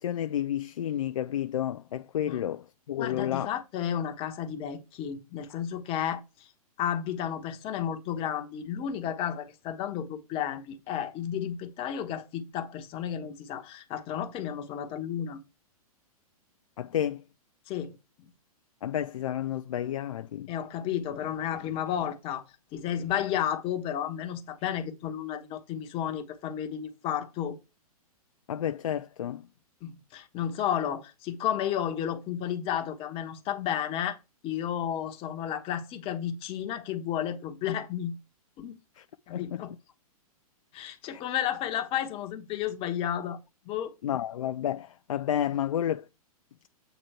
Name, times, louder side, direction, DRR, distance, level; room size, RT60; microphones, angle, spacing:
voice 1, 0.0-3.5 16.8-17.2 18.8-20.5 28.5-29.5 39.0-39.1 39.3-39.6 41.0-41.2 44.0-46.0, left 10 dB, 60° left, 0.5 m, -31 dB
voice 2, 3.0-6.5 6.8-15.4 17.7-18.3 20.5-22.4 22.7-27.6 29.8-34.2 34.4-38.1 38.6-38.8 39.3-39.7 40.7-43.4 43.6-43.9, left 10 dB, 30° left, 1.2 m, -32 dB
8.0 x 3.7 x 4.5 m
figure-of-eight pair, 110°, 19 cm